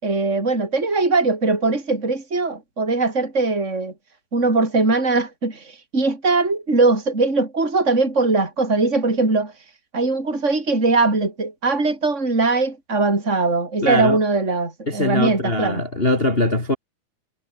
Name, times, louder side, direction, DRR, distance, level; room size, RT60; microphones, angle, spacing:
voice 1, 0.0-3.9 4.3-9.5 9.9-15.8, right 3 dB, 20° right, 6.1 m, -20 dB
voice 2, 13.8-14.2 14.9-16.8, left 1 dB, 15° left, 3.4 m, -21 dB
omnidirectional pair, 4.0 m